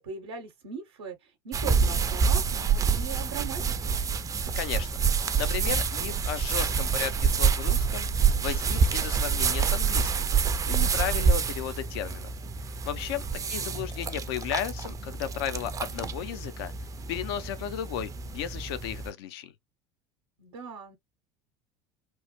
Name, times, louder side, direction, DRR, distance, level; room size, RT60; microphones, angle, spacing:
voice 1, 0.0-4.0 13.4-13.9 20.4-21.0, right 5 dB, 80° right, 0.7 m, -40 dB
sound 1, 1.5-19.1, right 6 dB, 25° right, 0.4 m, -27 dB
voice 2, 4.6-4.9 5.4-10.3 10.7-12.3 12.9-16.7 17.1-19.5, left 10 dB, 70° left, 0.5 m, -34 dB
3.0 x 2.0 x 2.8 m
hypercardioid pair, 70°, 14 cm